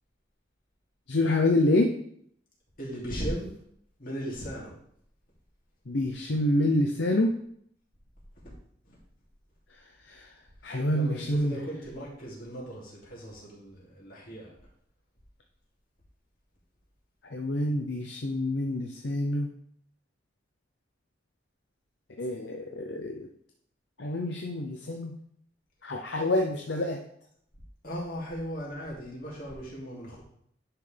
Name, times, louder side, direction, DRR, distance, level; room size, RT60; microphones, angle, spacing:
voice 1, 1.1-1.9 5.9-7.3 10.6-11.6 17.3-19.5 22.2-23.3 24.0-25.1 25.8-27.0, left 1 dB, 70° left, 2 dB, 0.7 m, -27 dB
voice 2, 2.8-3.6 4.0-4.7 8.9-9.0 10.9-14.5 26.2-26.4 27.8-30.2, equal, 50° left, -5 dB, 2.9 m, -37 dB
10.0 x 5.8 x 3.4 m, 0.67 s
head